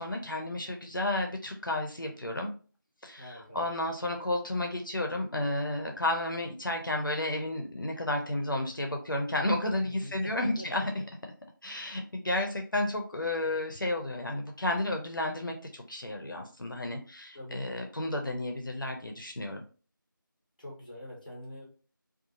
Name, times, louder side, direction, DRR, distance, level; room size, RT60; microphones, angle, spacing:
voice 1, 0.0-2.5 3.0-10.9 11.6-19.6, left 1 dB, 65° left, 3 dB, 0.6 m, -32 dB
voice 2, 3.2-3.6 9.8-11.0 17.3-17.8 20.6-21.7, left 1 dB, 20° left, -2 dB, 0.9 m, -45 dB
2.7 x 2.3 x 2.7 m, 0.38 s
figure-of-eight pair, 175°, 11 cm